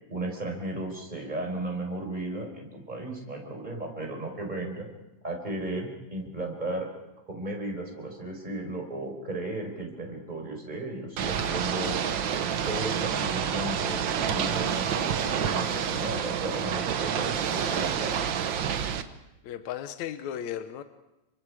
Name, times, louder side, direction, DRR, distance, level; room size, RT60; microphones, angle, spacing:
voice 1, 0.1-4.9 5.2-6.9 7.3-12.0 12.7-18.1, right 2 dB, 15° right, 2 dB, 4.7 m, -35 dB
Ocean / Boat Water vehicle, 11.2-19.0, right 8 dB, 60° right, 1.3 m, -28 dB
voice 2, 19.4-20.8, left 10 dB, 75° left, 9 dB, 2.2 m, -35 dB
30.0 x 25.5 x 4.9 m, 0.96 s
omnidirectional pair, 3.3 m